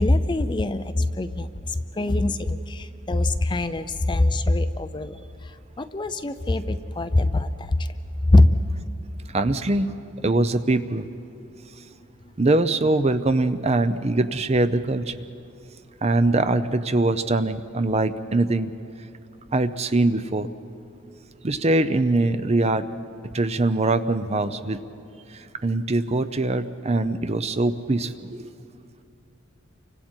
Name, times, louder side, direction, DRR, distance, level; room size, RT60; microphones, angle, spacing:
voice 1, 0.0-1.5 2.0-5.1 5.8-7.5 8.3-8.5, left 2 dB, 20° left, 11 dB, 0.5 m, -22 dB
voice 2, 9.3-9.9 10.2-11.0 12.4-15.0 16.0-18.7 19.5-20.5 21.4-22.8 23.3-24.8 25.6-28.1, right 2 dB, 30° right, 11 dB, 0.6 m, -22 dB
30.0 x 25.0 x 4.5 m, 2.7 s
head